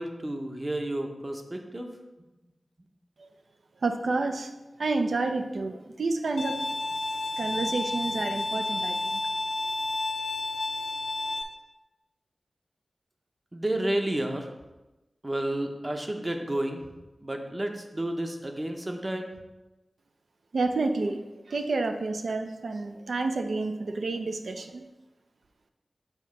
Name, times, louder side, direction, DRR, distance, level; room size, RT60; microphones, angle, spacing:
voice 1, 0.0-2.0 13.5-14.5 15.2-16.8 17.2-19.4, right 1 dB, 30° right, 4 dB, 0.8 m, -31 dB
voice 2, 3.8-4.5 4.8-6.7 7.4-9.2 20.5-24.9, right 3 dB, 80° right, 7 dB, 0.5 m, -29 dB
Bowed string instrument, 6.4-11.4, left 2 dB, 60° left, 0.5 m, -31 dB
7.1 x 2.8 x 5.3 m, 1.1 s
wide cardioid pair, 65°, 0 cm